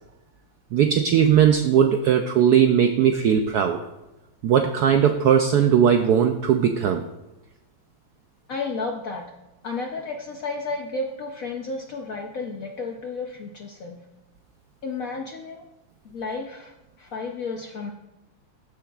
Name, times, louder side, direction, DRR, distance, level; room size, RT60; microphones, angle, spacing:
voice 1, 0.7-3.8 4.4-7.1, right 8 dB, 80° right, 6 dB, 0.9 m, -19 dB
voice 2, 8.5-9.3 9.6-14.0 14.8-15.6 16.0-17.9, left 3 dB, 65° left, 1 dB, 0.8 m, -32 dB
14.5 x 7.2 x 2.4 m, 1.0 s
omnidirectional pair, 2.3 m